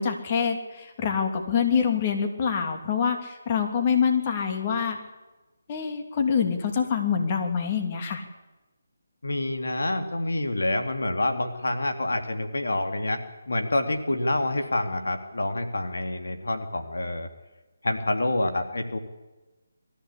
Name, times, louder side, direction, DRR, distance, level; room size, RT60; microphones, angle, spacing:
voice 1, 0.0-5.0 5.7-8.2, left 6 dB, 35° left, 4 dB, 2.9 m, -25 dB
voice 2, 9.2-17.3 17.8-19.0, left 2 dB, 80° left, 6 dB, 2.3 m, -27 dB
21.5 x 14.5 x 8.5 m, 1.1 s
figure-of-eight pair, 160°, 0 cm